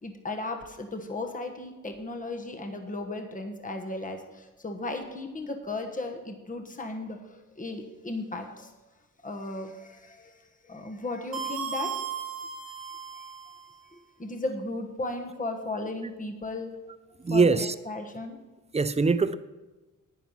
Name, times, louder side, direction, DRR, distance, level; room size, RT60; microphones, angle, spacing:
voice 1, 0.0-8.7 9.2-12.0 13.1-13.2 13.8-16.7 17.3-18.4, left 2 dB, 25° left, 4 dB, 1.3 m, -36 dB
sound 1, 11.3-13.7, right 7 dB, 85° right, 1.2 m, -35 dB
voice 2, 17.2-17.7 18.7-19.3, right 4 dB, 20° right, 14 dB, 0.5 m, -22 dB
10.5 x 10.0 x 5.8 m, 1.2 s
wide cardioid pair, 145°, 34 cm